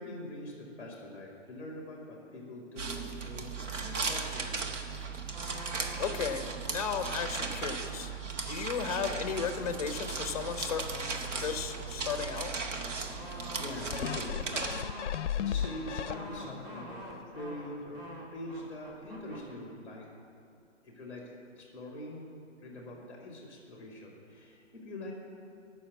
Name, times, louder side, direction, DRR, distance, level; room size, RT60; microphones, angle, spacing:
voice 1, 0.0-4.6 13.2-14.6 14.9-20.1 20.8-22.3 22.6-25.1, left 1 dB, 5° left, -1 dB, 1.7 m, -44 dB
sound 1, 2.8-14.8, right 4 dB, 85° right, 1.4 m, -37 dB
sound 2, 5.3-6.7 7.1-8.2 9.0-19.5, equal, 40° right, 2.6 m, -47 dB
voice 2, 6.0-8.1 8.5-10.8 11.4-12.5, left 6 dB, 30° left, 8 dB, 0.8 m, -34 dB
sound 3, 13.9-16.6 17.1-17.2, left 9 dB, 70° left, 0.5 m, -35 dB
11.5 x 6.4 x 8.1 m, 2.6 s
hypercardioid pair, 165°, 36 cm